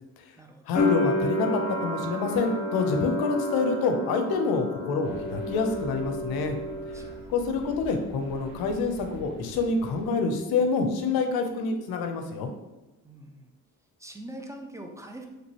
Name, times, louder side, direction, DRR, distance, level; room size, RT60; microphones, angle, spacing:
voice 1, 0.7-6.6 7.3-12.5, left 4 dB, 70° left, 5 dB, 0.6 m, -27 dB
sound 1, 0.7-7.6 7.8-8.7, left 1 dB, 45° left, 1.1 m, -31 dB
sound 2, 5.0-10.1, equal, 50° right, 1.1 m, -47 dB
voice 2, 13.0-13.5 14.0-15.3, right 1 dB, 10° right, 2 dB, 0.4 m, -43 dB
3.1 x 2.6 x 2.9 m, 1.0 s
supercardioid pair, 55°, 38 cm